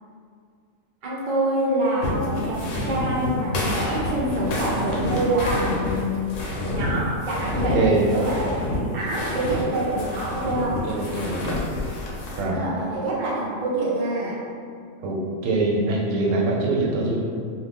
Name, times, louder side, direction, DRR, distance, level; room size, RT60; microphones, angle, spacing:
voice 1, 1.0-6.4 6.7-7.8 8.1-10.8 12.5-14.4, right 1 dB, 55° right, -6 dB, 0.6 m, -26 dB
sound 1, 2.0-12.4, left 1 dB, 70° left, 1.0 m, -28 dB
voice 2, 7.7-8.1 10.8-11.6 12.4-12.6 15.0-17.2, right 2 dB, 75° right, -2 dB, 0.9 m, -23 dB
2.6 x 2.4 x 3.4 m, 2.2 s
omnidirectional pair, 1.4 m